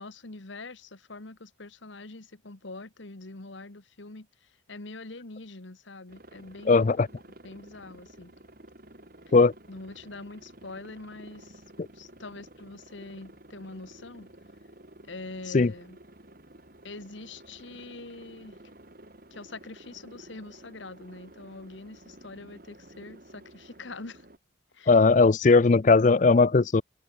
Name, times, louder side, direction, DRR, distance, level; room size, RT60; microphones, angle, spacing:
voice 1, 0.0-7.1 7.4-8.3 9.7-11.6 11.9-14.3 15.1-16.0 16.8-18.6 19.3-24.3 24.7-25.1 25.7-25.8, left 2 dB, 70° left, 1.6 m, -44 dB
Aircraft, 6.1-24.4, right 1 dB, 45° right, 3.2 m, -52 dB
voice 2, 6.7-7.1 9.3-9.5 15.5-15.7 24.9-26.8, left 4 dB, 40° left, 0.4 m, -18 dB
head